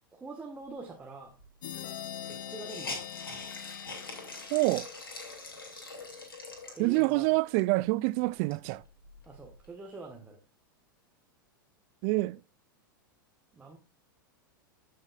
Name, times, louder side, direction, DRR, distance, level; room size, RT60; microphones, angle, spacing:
voice 1, 0.1-1.4 2.3-3.1 6.7-7.4 9.3-10.4 13.5-13.8, right 3 dB, 10° right, 1.4 m, -44 dB
Hiss, 1.4-1.5 1.7-1.8 2.2-7.3 7.8-7.9 8.3-9.7, left 3 dB, 80° left, 2.7 m, -44 dB
sound 1, 1.6-5.2, left 9 dB, 65° left, 0.7 m, -43 dB
voice 2, 4.5-4.9 6.8-8.8 12.0-12.4, right 23 dB, 45° right, 0.4 m, -26 dB
13.5 x 6.4 x 2.4 m
figure-of-eight pair, 95°, 12 cm